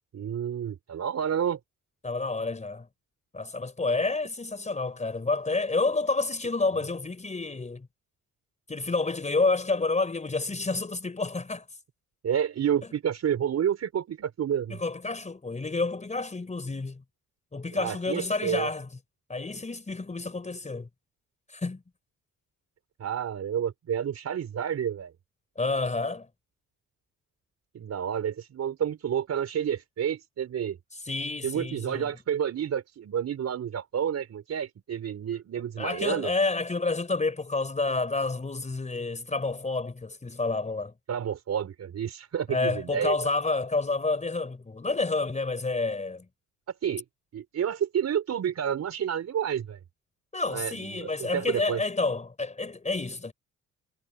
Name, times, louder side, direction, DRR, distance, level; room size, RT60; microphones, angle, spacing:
voice 1, 0.1-1.6 12.2-14.8 17.8-18.7 23.0-25.1 27.7-30.8 31.4-36.3 41.1-43.1 46.8-47.0 47.3-49.8 50.5-51.8, right 9 dB, 60° right, 4.8 m, -30 dB
voice 2, 2.0-2.9 3.3-7.9 8.7-11.7 14.7-17.0 17.5-18.9 19.3-20.9 21.5-21.8 25.6-26.3 30.9-32.1 35.8-40.9 42.5-46.2 50.3-53.3, left 3 dB, 25° left, 4.6 m, -29 dB
cardioid pair, 90°, 30 cm